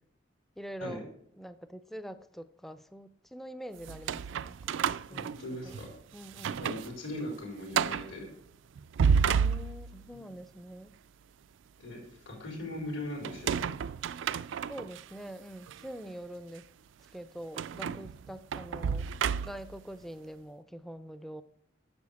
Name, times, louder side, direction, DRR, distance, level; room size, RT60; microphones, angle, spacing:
voice 1, 0.6-1.1 1.4-4.7 5.1-5.8 6.1-6.8 9.2-10.9 14.7-16.7 17.1-19.1 19.4-21.4, right 1 dB, ahead, 12 dB, 0.4 m, -44 dB
sound 1, 3.8-5.9 6.3-6.9 7.2-7.3 7.7-8.1 8.8-10.1 13.2-15.0 15.7-15.8 17.6-19.8, right 6 dB, 75° right, 0.3 m, -31 dB
voice 2, 5.1-5.9 6.5-8.3 10.1-10.2 11.8-12.0 12.3-13.7, left 1 dB, 75° left, -2 dB, 4.4 m, -39 dB
9.6 x 7.0 x 7.0 m, 0.70 s
head